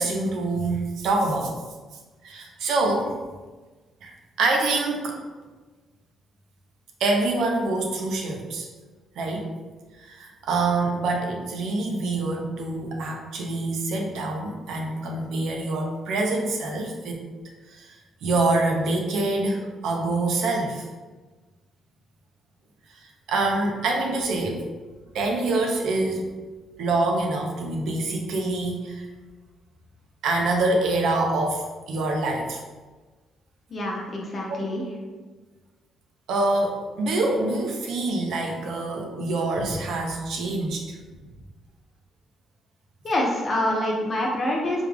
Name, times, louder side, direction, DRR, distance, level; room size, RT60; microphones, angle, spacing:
voice 1, 0.0-1.5 2.2-3.2 4.0-5.2 7.0-8.7 9.2-9.5 10.0-17.2 17.7-17.9 18.2-20.8 23.3-24.6 25.1-26.3 26.8-29.0 30.2-32.6 36.3-41.0, right 2 dB, 80° right, 1 dB, 0.6 m, -25 dB
voice 2, 33.7-34.8 43.0-44.8, left 1 dB, 40° left, -2 dB, 0.8 m, -26 dB
3.5 x 2.3 x 3.3 m, 1.3 s
cardioid pair, 90°, 0 cm